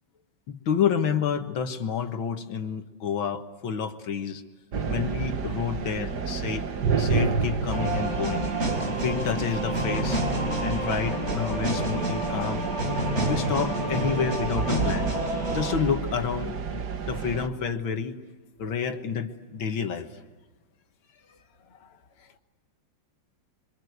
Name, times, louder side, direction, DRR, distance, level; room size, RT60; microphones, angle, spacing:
voice 1, 0.5-4.4 4.9-6.7 7.0-8.5 9.0-10.2 10.6-12.6 13.3-15.1 15.5-18.2 18.6-20.1, left 7 dB, 85° left, 2.3 m, -29 dB
sound 1, 4.7-17.5, right 5 dB, 60° right, 1.9 m, -31 dB
sound 2, 7.7-15.8, right 1 dB, 35° right, 5.2 m, -28 dB
voice 2, 21.7-22.4, left 6 dB, 35° left, 1.5 m, -59 dB
27.0 x 25.5 x 8.1 m
omnidirectional pair, 2.1 m